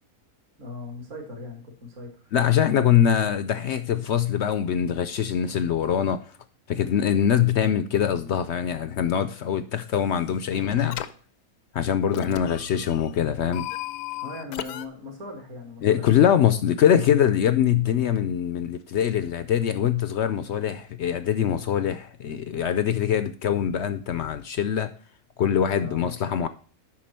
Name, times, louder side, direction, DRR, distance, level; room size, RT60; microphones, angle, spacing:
voice 1, 0.6-2.3 12.1-12.6 14.2-16.1 25.7-26.2, left 3 dB, 55° right, 1 dB, 2.2 m, -38 dB
voice 2, 2.3-6.2 6.7-11.0 11.7-13.7 15.8-24.9 25.4-26.5, left 9 dB, 65° left, 11 dB, 0.7 m, -23 dB
sound 1, 9.7-10.2 10.5-11.1 12.1-14.9, left 12 dB, 85° left, 1.1 m, -36 dB
8.6 x 5.7 x 4.3 m, 0.43 s
omnidirectional pair, 1.6 m